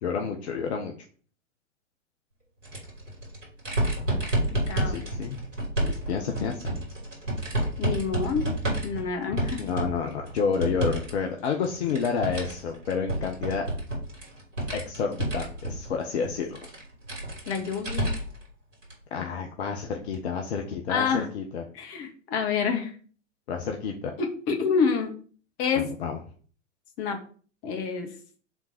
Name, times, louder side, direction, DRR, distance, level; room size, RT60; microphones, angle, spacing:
voice 1, 0.0-0.9 4.8-5.4 5.8-6.8 9.6-13.7 14.7-16.6 19.1-21.6 23.5-24.1 25.8-26.2, left 6 dB, 55° left, 3 dB, 1.2 m, -30 dB
sound 1, 2.6-11.1 11.4-18.4 18.8-18.9 20.1-20.2, right 1 dB, 70° right, 3.8 m, -30 dB
voice 2, 4.4-5.0 7.8-8.5 8.8-9.6 17.5-18.1 20.9-21.3 21.7-22.9 24.2-25.1 25.6-25.8 27.0-27.2 27.6-28.1, left 6 dB, 35° left, 4 dB, 1.9 m, -27 dB
7.2 x 3.9 x 5.8 m, 0.43 s
figure-of-eight pair, 100°, 39 cm